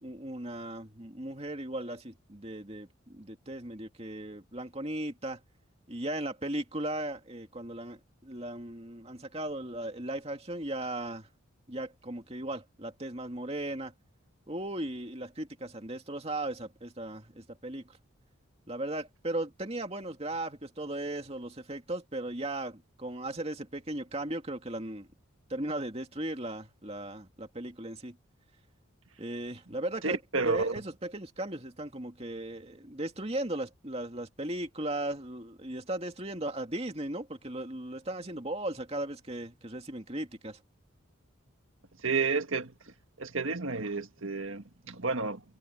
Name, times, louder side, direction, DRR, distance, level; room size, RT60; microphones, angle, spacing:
voice 1, 0.0-5.4 5.9-11.3 11.7-13.9 14.5-18.0 18.7-25.1 25.5-28.2 29.2-30.2 30.5-40.6, right 1 dB, 30° right, 2.5 m, -37 dB
voice 2, 30.0-30.8 42.0-42.7 43.2-45.4, right 4 dB, 70° right, 1.8 m, -31 dB
head